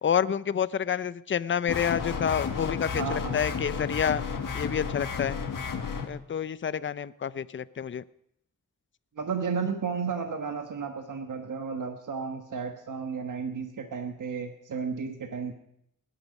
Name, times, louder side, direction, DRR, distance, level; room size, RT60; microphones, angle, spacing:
voice 1, 0.0-4.2 4.5-5.4 6.1-8.0, left 8 dB, 40° left, 17 dB, 0.5 m, -28 dB
sound 1, 1.7-6.1, left 6 dB, 85° left, 1.6 m, -32 dB
voice 2, 2.9-3.4 9.2-15.5, right 5 dB, 70° right, 5 dB, 1.4 m, -33 dB
19.0 x 10.5 x 5.3 m, 0.75 s
wide cardioid pair, 85°, 32 cm